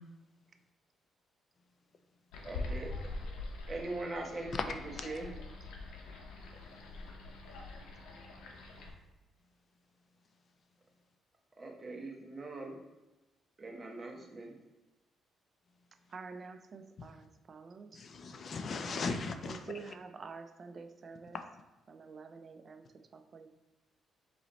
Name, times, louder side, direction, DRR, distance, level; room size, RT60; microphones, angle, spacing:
sound 1, 2.3-8.9, left 2 dB, 85° left, 0.7 m, -44 dB
voice 1, 2.4-2.9 3.7-5.4 11.6-12.8 13.6-14.5, right 2 dB, 25° right, 0 dB, 1.0 m, -41 dB
voice 2, 16.1-18.1 19.1-21.4 21.9-23.5, right 4 dB, 45° right, 8 dB, 0.4 m, -48 dB
voice 3, 17.9-19.6, left 4 dB, 50° left, 7 dB, 0.5 m, -37 dB
4.0 x 3.0 x 3.9 m, 1.1 s
cardioid pair, 90°, 0 cm